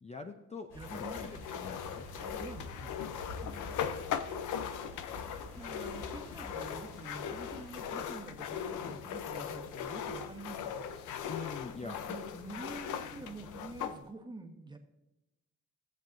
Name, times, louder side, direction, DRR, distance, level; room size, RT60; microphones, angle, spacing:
voice 1, 0.0-1.3 1.5-2.1 3.4-3.8 5.1-5.4 11.3-12.2, left 4 dB, 20° left, 6 dB, 0.6 m, -45 dB
sound 1, 0.7-7.7, left 1 dB, 60° left, 2.9 m, -48 dB
voice 2, 0.7-1.4 1.8-2.9 5.6-10.8 11.8-14.8, right 3 dB, 15° right, 2 dB, 1.3 m, -47 dB
sound 2, 0.8-14.0, left 8 dB, 80° left, 0.7 m, -39 dB
17.0 x 7.3 x 2.6 m, 0.99 s
cardioid pair, 90°, 30 cm